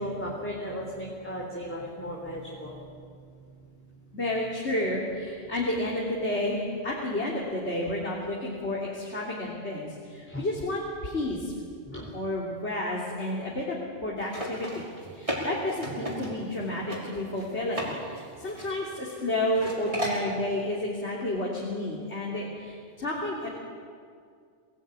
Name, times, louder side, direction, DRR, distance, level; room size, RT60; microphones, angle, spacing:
voice 1, 0.0-2.9 10.3-10.4 11.9-12.1, equal, 10° left, -3 dB, 3.8 m, -35 dB
voice 2, 4.1-11.5 12.1-14.9 15.1-23.5, left 1 dB, 70° left, -4 dB, 3.6 m, -31 dB
sound 1, 14.2-16.6 16.9-17.0 17.4-17.9 18.2-19.2 19.5-20.2, equal, 30° right, 5.8 m, -34 dB
27.0 x 18.5 x 9.7 m, 2.2 s
omnidirectional pair, 1.2 m